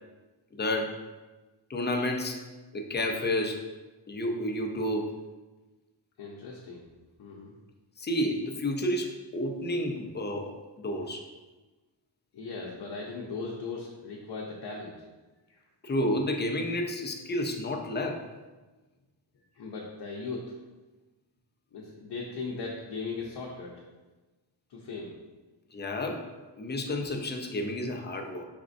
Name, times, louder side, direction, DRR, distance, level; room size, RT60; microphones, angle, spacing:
voice 1, 0.5-0.9 1.7-2.4 2.7-3.6 4.1-5.1 8.0-11.2 15.8-18.2 25.7-26.2 26.6-28.5, left 1 dB, 25° left, 2 dB, 0.4 m, -30 dB
voice 2, 6.2-6.9 7.2-7.5 12.3-15.0 15.5-15.6 19.3-20.5 21.7-23.8 24.7-25.2, left 4 dB, 65° left, -3 dB, 0.7 m, -38 dB
5.0 x 3.5 x 2.5 m, 1.2 s
wide cardioid pair, 155°, 44 cm